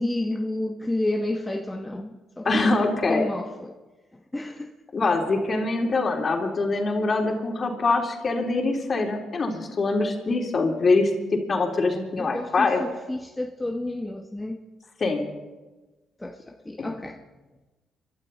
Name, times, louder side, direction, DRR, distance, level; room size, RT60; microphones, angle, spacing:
voice 1, 0.0-2.7 3.0-3.8 4.1-4.8 12.2-14.6 14.8-14.9 16.2-17.2, left 1 dB, 15° left, 1.2 m, -31 dB
voice 2, 2.4-3.2 4.9-11.1 11.5-12.8 15.0-15.3 16.8-16.9, left 3 dB, 45° left, 3.4 m, -24 dB
27.5 x 12.0 x 4.2 m
supercardioid pair, 55°, 0 cm